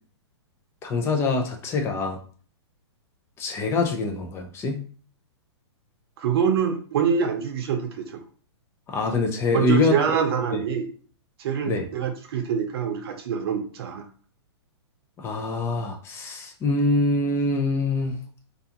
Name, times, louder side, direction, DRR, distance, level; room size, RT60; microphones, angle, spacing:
voice 1, 0.8-2.2 3.4-4.8 8.9-10.3 11.7-11.8 15.2-18.2, left 2 dB, 15° left, 3 dB, 0.4 m, -24 dB
voice 2, 6.2-8.2 9.5-10.9 11.4-14.0, right 7 dB, 60° right, 5 dB, 0.7 m, -25 dB
2.5 x 2.3 x 2.8 m, 0.43 s
hypercardioid pair, 145°, 15 cm